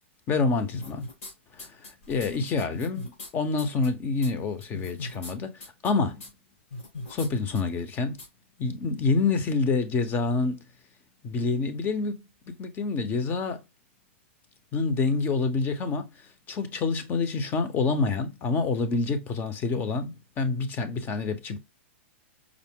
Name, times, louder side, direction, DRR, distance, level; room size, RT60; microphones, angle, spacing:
voice 1, 0.3-1.0 1.5-6.2 7.1-8.2 8.6-10.7 11.2-13.6 14.7-16.1 16.5-21.6, left 4 dB, 30° left, 0.7 m, -27 dB
sound 1, 0.7-1.3 1.6-3.3 3.6-3.9 4.2-4.3 4.6-5.3 5.6-5.9 6.2-6.3 6.7-7.3 7.6-7.7 8.2-8.3, left 2 dB, 80° left, 2.4 m, -39 dB
4.9 x 2.0 x 3.6 m
hypercardioid pair, 130°, 7 cm